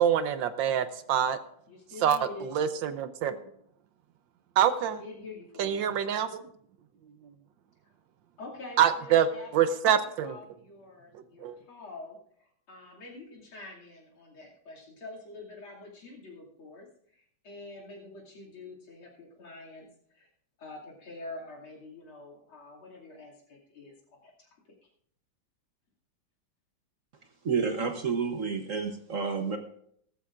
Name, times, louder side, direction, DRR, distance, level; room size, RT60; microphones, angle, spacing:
voice 1, 0.0-1.4 2.0-3.3 4.6-5.0 5.6-6.4 8.8-9.3 9.5-10.4 11.1-11.5, right 9 dB, 70° right, 11 dB, 1.4 m, -25 dB
voice 2, 1.7-2.5 4.9-6.0 8.4-9.8 10.0-16.9 17.1-19.9 20.1-20.3 20.6-23.9 24.2-24.5, left 2 dB, 85° left, -3 dB, 3.4 m, -46 dB
voice 3, 27.4-29.6, right 5 dB, 50° right, 5 dB, 1.1 m, -30 dB
17.0 x 13.5 x 2.5 m, 0.67 s
omnidirectional pair, 2.2 m